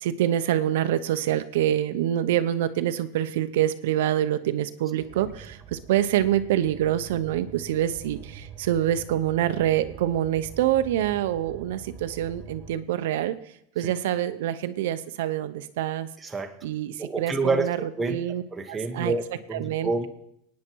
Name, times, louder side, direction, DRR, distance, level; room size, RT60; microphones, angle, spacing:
voice 1, 0.0-13.4 13.8-16.1 16.6-17.8 18.1-18.4 18.7-19.1 19.5-19.9, right 12 dB, 70° right, 11 dB, 0.8 m, -26 dB
sound 1, 5.0-12.8, right 6 dB, 25° right, 1.7 m, -45 dB
voice 2, 16.2-16.6 17.0-17.7 18.0-18.2 18.5-20.1, right 3 dB, 10° right, 4 dB, 1.1 m, -28 dB
24.0 x 9.5 x 4.7 m, 0.76 s
supercardioid pair, 165°, 0 cm